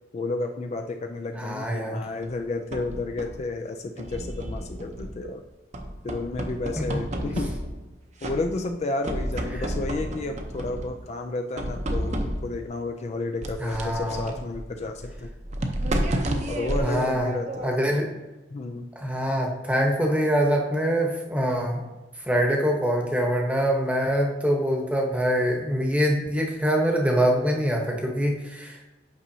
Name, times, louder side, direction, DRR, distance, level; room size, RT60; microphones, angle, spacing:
voice 1, 0.1-5.4 6.0-7.5 8.2-15.3 16.5-17.8 18.5-18.9, left 2 dB, 35° left, 5 dB, 0.4 m, -31 dB
voice 2, 1.4-2.0 6.8-6.9 13.6-14.3 16.8-17.3 17.6-18.1 19.0-21.8 22.2-28.9, equal, 10° right, 0 dB, 1.0 m, -24 dB
sound 1, 2.2-3.5 4.0-5.3 5.7-7.9 8.2-8.8 9.0-11.0 11.6-12.6 13.4-17.9, right 1 dB, 40° right, 0.7 m, -31 dB
8.8 x 5.4 x 2.7 m, 1.1 s
head